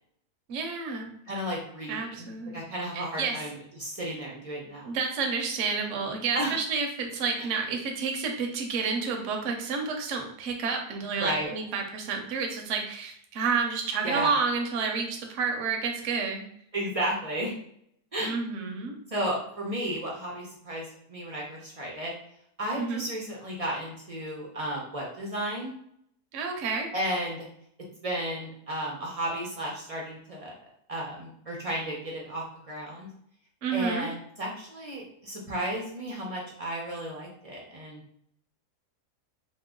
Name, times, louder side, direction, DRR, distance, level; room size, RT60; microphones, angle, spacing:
voice 1, 0.5-1.1 1.9-2.6 2.9-3.4 4.8-16.4 18.2-19.0 22.8-23.0 26.3-26.9 33.6-34.1, right 5 dB, 65° right, 2 dB, 0.9 m, -30 dB
voice 2, 1.3-4.9 6.3-6.5 7.4-7.5 11.2-11.5 14.0-14.3 16.7-17.5 18.1-18.3 19.1-22.1 22.6-25.7 26.9-27.4 28.0-30.5 30.9-33.1 33.7-38.0, right 1 dB, 45° right, -3 dB, 0.4 m, -33 dB
2.9 x 2.1 x 3.6 m, 0.69 s
omnidirectional pair, 1.6 m